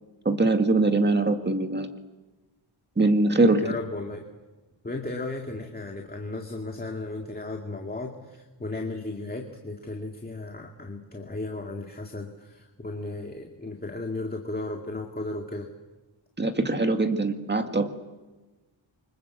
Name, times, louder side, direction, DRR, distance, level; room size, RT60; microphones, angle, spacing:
voice 1, 0.3-1.9 3.0-3.6 16.4-17.9, right 2 dB, 20° right, 6 dB, 2.0 m, -22 dB
voice 2, 3.6-4.2 4.8-15.7, left 2 dB, 20° left, 2 dB, 2.1 m, -35 dB
28.5 x 25.0 x 8.3 m, 1.2 s
wide cardioid pair, 165°, 49 cm